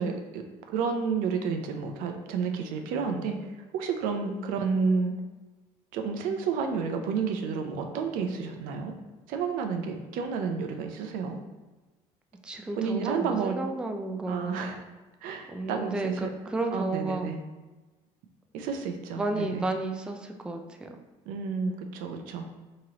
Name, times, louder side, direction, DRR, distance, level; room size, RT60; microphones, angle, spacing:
voice 1, 0.0-3.4 3.7-5.1 5.9-8.9 9.3-11.4 12.7-13.6 14.3-14.8 15.2-16.3 16.7-17.4 18.5-19.6 21.3-22.5, right 5 dB, 80° right, 5 dB, 0.5 m, -30 dB
voice 2, 12.4-14.7 15.5-17.3 19.2-21.0, right 2 dB, 5° right, 4 dB, 0.3 m, -32 dB
3.7 x 3.1 x 2.8 m, 1.2 s
cardioid pair, 105°, 14 cm